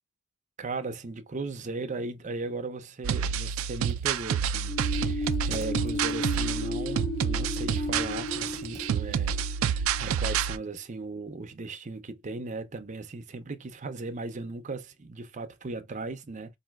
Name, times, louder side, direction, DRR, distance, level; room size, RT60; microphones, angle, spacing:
voice 1, 0.6-16.6, right 3 dB, 35° right, 0.6 m, -37 dB
sound 1, 3.0-10.6, right 7 dB, 80° right, 0.3 m, -29 dB
Computer keyboard, 3.7-9.3, right 3 dB, 15° right, 0.9 m, -48 dB
sound 2, 4.7-10.3, left 2 dB, 50° left, 2.0 m, -34 dB
4.1 x 2.7 x 2.2 m
head